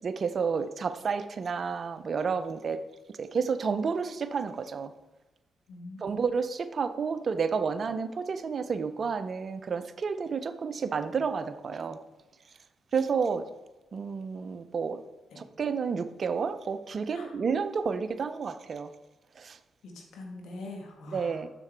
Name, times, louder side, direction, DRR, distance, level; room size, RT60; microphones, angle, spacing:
voice 1, 0.0-2.8 3.2-4.9 6.0-12.0 12.9-13.5 13.9-15.0 15.4-18.9 19.4-19.6 21.1-21.5, right 5 dB, 55° right, 12 dB, 0.5 m, -30 dB
voice 2, 5.7-6.2 15.3-15.4 17.1-17.3 19.8-21.4, left 2 dB, 70° left, 1 dB, 1.4 m, -43 dB
7.1 x 6.6 x 3.3 m, 1.1 s
hypercardioid pair, 45°, 0 cm